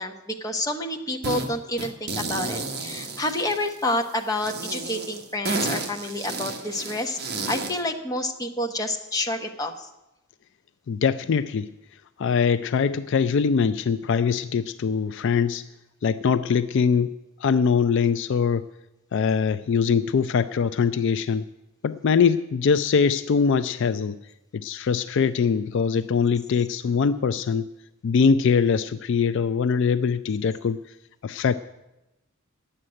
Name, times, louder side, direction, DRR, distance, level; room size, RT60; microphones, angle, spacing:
voice 1, 0.0-7.2 7.5-9.9, left 1 dB, 15° left, 3 dB, 1.0 m, -29 dB
sound 1, 1.2-1.5 1.8-3.9 4.4-7.8, right 3 dB, 50° right, 1.4 m, -32 dB
voice 2, 10.9-11.7 12.2-15.7 16.0-17.1 17.4-18.6 19.1-21.4 21.8-24.2 24.5-27.6 28.0-30.8 31.2-31.5, left 6 dB, 55° left, 12 dB, 0.4 m, -22 dB
10.0 x 7.8 x 9.7 m, 0.96 s
head